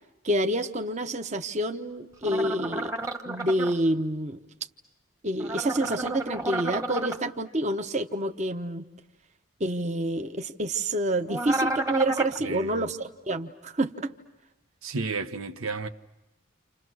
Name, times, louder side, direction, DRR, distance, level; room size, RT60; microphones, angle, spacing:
voice 1, 0.2-2.9 3.3-4.4 5.2-8.8 9.6-14.1, right 1 dB, 35° right, 1.0 m, -28 dB
sound 1, 2.2-3.7 5.4-7.2 11.3-12.4, right 2 dB, 15° right, 1.3 m, -31 dB
voice 2, 12.4-12.9 14.8-15.9, right 3 dB, 85° right, 1.2 m, -32 dB
30.0 x 28.5 x 6.3 m
head